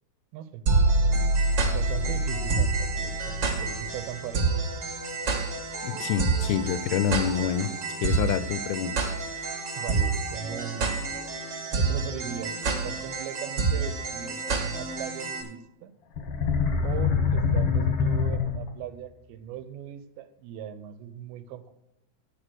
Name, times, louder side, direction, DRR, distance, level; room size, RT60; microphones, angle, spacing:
voice 1, 0.3-0.6 1.7-4.4 9.8-11.4 11.8-15.9 16.8-21.7, right 9 dB, 85° right, 11 dB, 2.6 m, -39 dB
sound 1, 0.7-15.4, right 3 dB, 35° right, 2.2 m, -27 dB
voice 2, 5.8-7.7 8.0-9.0, left 9 dB, 90° left, 14 dB, 2.5 m, -27 dB
sound 2, 16.2-19.0, left 5 dB, 65° left, 1.5 m, -25 dB
10.0 x 6.9 x 6.3 m, 0.86 s
omnidirectional pair, 4.3 m